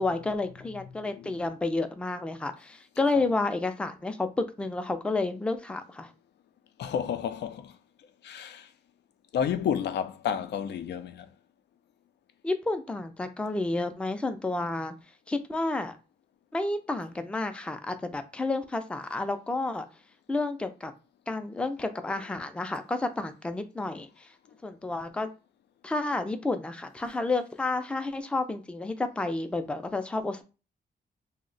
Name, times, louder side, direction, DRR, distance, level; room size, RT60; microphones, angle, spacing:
voice 1, 0.0-6.1 12.4-14.9 15.3-16.0 16.5-19.9 20.3-20.9 21.3-24.3 24.6-25.3 25.8-30.4, left 2 dB, 5° left, 0.3 m, -30 dB
voice 2, 1.1-1.4 3.1-3.2 6.8-7.8 8.2-8.7 9.3-11.3, left 8 dB, 90° left, 0.4 m, -31 dB
2.7 x 2.1 x 3.8 m
wide cardioid pair, 140°, 17 cm